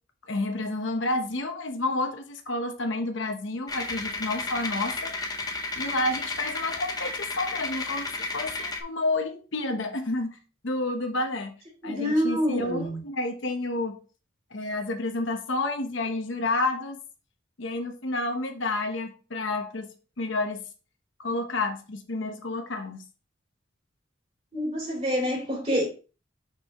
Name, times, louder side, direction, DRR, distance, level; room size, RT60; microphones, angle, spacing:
voice 1, 0.3-5.2 5.8-10.4 10.6-11.5 11.8-14.0 14.5-17.0 17.6-19.9 20.2-20.6 21.2-23.0, left 2 dB, 65° left, 1.0 m, -30 dB
sound 1, 3.7-8.8, left 3 dB, 20° left, 0.8 m, -33 dB
voice 2, 11.8-13.0 24.5-25.9, equal, 30° right, 3.0 m, -27 dB
6.6 x 5.5 x 3.0 m
head